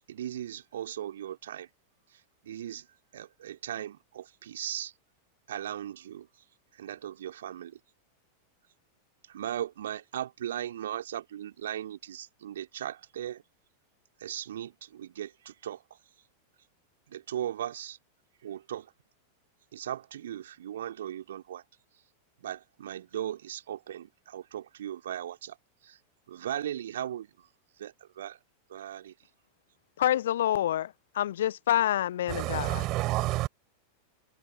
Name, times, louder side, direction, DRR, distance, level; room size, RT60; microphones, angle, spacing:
voice 1, 0.1-1.7 2.1-2.9 3.1-4.9 5.5-6.3 6.7-7.8 9.3-13.4 14.2-15.8 17.1-18.0 18.4-18.9 19.7-21.6 22.4-25.6 25.8-26.0 26.3-27.3 27.8-28.4 28.7-29.1, right 11 dB, 60° right, 4.0 m, -38 dB
voice 2, 30.0-32.9, left 11 dB, 60° left, 1.2 m, -27 dB
voice 3, 32.3-33.5, right 18 dB, 40° right, 6.6 m, -29 dB
figure-of-eight pair, 90°, 0 cm